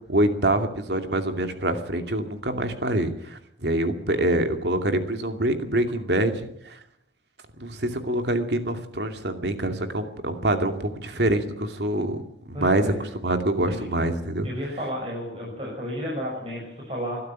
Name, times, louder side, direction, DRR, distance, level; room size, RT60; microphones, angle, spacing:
voice 1, 0.1-6.8 7.6-12.8 13.2-14.5, right 1 dB, 75° right, 7 dB, 2.6 m, -25 dB
voice 2, 12.5-13.1 13.7-13.9 14.4-17.2, equal, 30° right, -4 dB, 6.2 m, -32 dB
22.0 x 12.5 x 9.5 m, 0.75 s
head